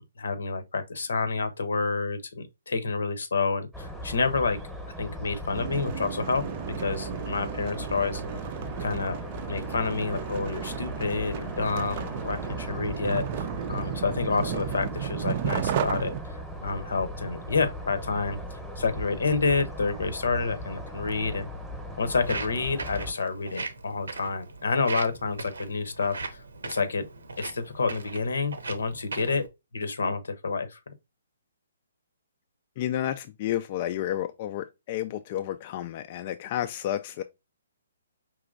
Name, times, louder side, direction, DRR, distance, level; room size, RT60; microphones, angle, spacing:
voice 1, 0.0-4.6 5.0-8.2 8.8-9.2 9.5-16.1 16.6-18.4 18.8-21.5 22.0-26.4 26.6-27.1 27.4-29.5 29.7-30.8, left 4 dB, 75° left, 0.8 m, -29 dB
sound 1, 3.7-23.1, equal, ahead, 0.9 m, -38 dB
sound 2, 5.5-16.2, right 9 dB, 40° right, 0.4 m, -34 dB
Walk footsteps, 22.1-29.5, right 3 dB, 80° right, 0.8 m, -39 dB
voice 2, 32.8-37.2, left 12 dB, 40° left, 0.3 m, -31 dB
5.0 x 3.0 x 2.4 m
hypercardioid pair, 140°, 0 cm